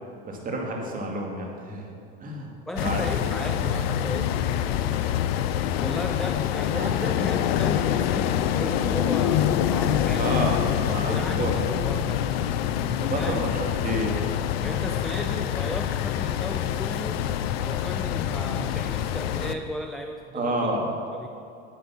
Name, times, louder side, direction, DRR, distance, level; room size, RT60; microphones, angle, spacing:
voice 1, 0.2-1.9 2.2-2.5 2.8-3.3 6.7-6.9 10.2-11.1 11.4-11.5 13.1-14.3 20.3-20.9, right 1 dB, 30° right, 0 dB, 2.3 m, -29 dB
voice 2, 2.7-5.0 5.8-10.5 11.0-12.2 12.8-13.4 14.6-17.2 17.6-20.7 21.1-21.3, left 1 dB, ahead, 5 dB, 0.4 m, -36 dB
sound 1, 2.8-19.5, left 10 dB, 80° left, 0.6 m, -26 dB
9.6 x 8.4 x 5.8 m, 2.6 s
supercardioid pair, 110°, 30 cm